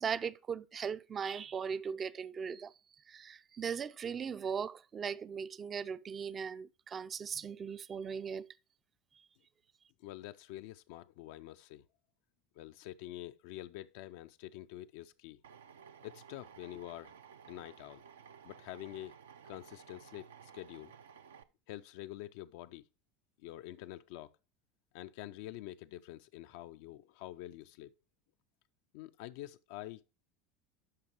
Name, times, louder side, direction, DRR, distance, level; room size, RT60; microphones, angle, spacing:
voice 1, 0.0-2.7 3.1-8.5, right 6 dB, 30° right, 0.4 m, -38 dB
voice 2, 10.0-11.8 12.6-15.4 16.0-17.1 17.5-18.0 18.4-19.1 19.5-20.9 21.7-22.8 23.4-24.3 24.9-27.9 28.9-30.1, left 14 dB, 65° left, 0.4 m, -47 dB
Drill, 15.4-21.4, right 7 dB, 75° right, 0.5 m, -55 dB
11.5 x 5.2 x 2.9 m
hypercardioid pair, 75°, 0 cm